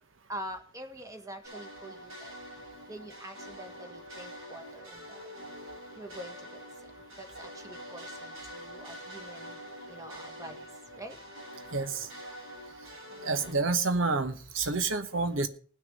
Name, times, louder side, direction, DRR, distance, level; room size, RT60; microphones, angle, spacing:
voice 1, 0.3-2.3 2.9-5.3 6.0-6.5 7.2-9.6 9.9-10.6 10.9-11.2, right 1 dB, 15° right, 6 dB, 1.6 m, -45 dB
sound 1, 1.4-13.5, equal, 85° right, 7.5 m, -45 dB
voice 2, 11.7-12.1 13.2-15.5, right 3 dB, 70° right, 10 dB, 1.1 m, -28 dB
19.0 x 6.5 x 5.3 m, 0.43 s
head